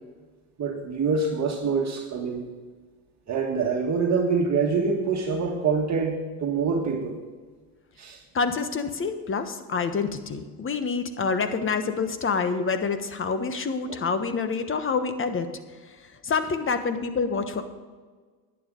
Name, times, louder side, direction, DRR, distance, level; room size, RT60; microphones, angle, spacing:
voice 1, 0.6-2.5 3.3-7.2 8.0-8.2 13.9-14.0, right 5 dB, 35° right, 1 dB, 1.7 m, -25 dB
voice 2, 8.3-15.5 15.9-16.0 16.2-17.6, left 5 dB, 25° left, 9 dB, 1.2 m, -27 dB
11.0 x 9.6 x 5.3 m, 1.4 s
supercardioid pair, 90°, 45 cm